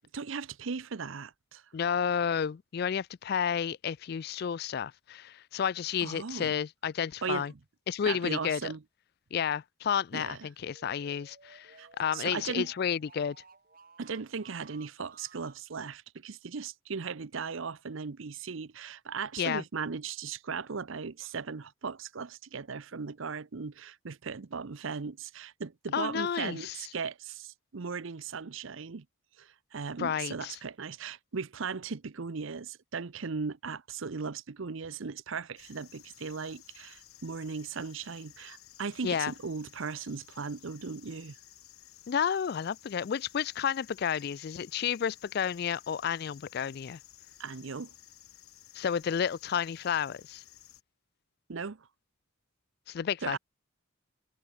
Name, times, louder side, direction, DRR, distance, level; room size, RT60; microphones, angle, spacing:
voice 1, 0.1-1.6 6.0-6.6 7.2-7.5 8.1-8.8 10.1-10.5 11.8-12.7 14.0-29.0 29.4-41.4 47.4-47.9 51.5-51.9 53.2-53.4, right 5 dB, 65° right, 0.7 m, -37 dB
voice 2, 1.7-7.5 7.9-8.6 9.3-13.4 19.4-19.6 25.9-26.8 30.0-30.6 39.0-39.3 42.1-47.0 48.7-50.4 52.9-53.4, left 7 dB, 50° left, 0.3 m, -31 dB
sound 1, 10.6-15.6, right 3 dB, 40° right, 3.6 m, -57 dB
sound 2, 35.6-50.8, left 13 dB, 90° left, 1.4 m, -55 dB
head